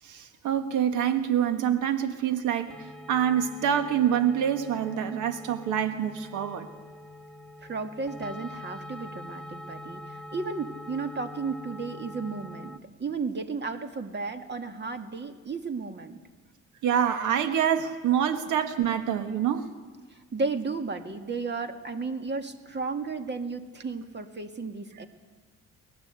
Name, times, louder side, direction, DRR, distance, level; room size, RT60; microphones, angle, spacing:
voice 1, 0.0-2.7 3.1-6.7 16.8-19.7, right 9 dB, 85° right, 8 dB, 1.6 m, -26 dB
sound 1, 2.7-12.8, left 1 dB, ahead, 1.5 m, -44 dB
voice 2, 7.6-16.2 20.1-25.1, right 4 dB, 35° right, 7 dB, 2.2 m, -34 dB
23.5 x 19.5 x 8.3 m, 1.4 s
cardioid pair, 90°, 30 cm